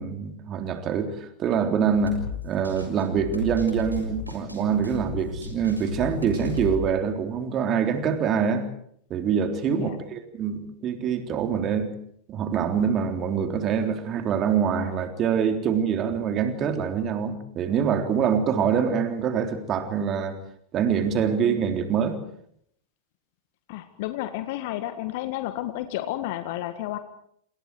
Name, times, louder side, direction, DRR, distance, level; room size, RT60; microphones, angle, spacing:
voice 1, 0.0-2.2 2.4-8.7 9.1-11.9 12.3-20.4 20.7-22.2, right 7 dB, 30° right, 6 dB, 3.6 m, -25 dB
sound 1, 1.8-6.8, left 3 dB, 90° right, 6.4 m, -34 dB
voice 2, 23.7-27.0, left 14 dB, 50° left, 9 dB, 1.6 m, -31 dB
28.0 x 28.0 x 4.8 m, 0.67 s
figure-of-eight pair, 90°, 0 cm